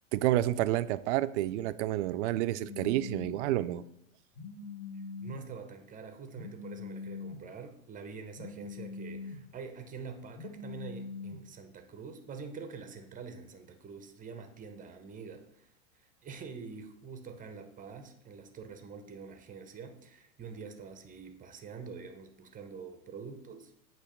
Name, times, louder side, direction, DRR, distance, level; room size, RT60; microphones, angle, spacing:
voice 1, 0.1-3.8, right 14 dB, 55° right, 0.5 m, -29 dB
Telephone, 2.6-3.4 4.3-5.4 6.3-7.4 8.3-9.4 10.3-11.4, left 4 dB, 30° left, 1.7 m, -42 dB
voice 2, 5.2-23.7, right 5 dB, 20° right, 0.8 m, -46 dB
8.2 x 3.1 x 5.1 m
hypercardioid pair, 100°, 42 cm